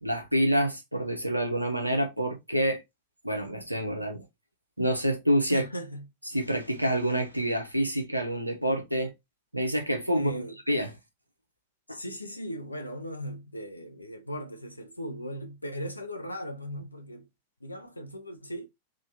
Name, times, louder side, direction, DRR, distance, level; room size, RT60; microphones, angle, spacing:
voice 1, 0.0-2.8 3.2-4.3 4.8-5.6 6.3-9.1 9.5-10.9 11.9-12.0, equal, 85° right, 0.9 m, -27 dB
voice 2, 5.5-6.1 10.1-10.6 11.9-17.3 17.6-18.7, equal, 85° left, 0.7 m, -37 dB
3.8 x 2.7 x 4.0 m
figure-of-eight pair, 90°, 0 cm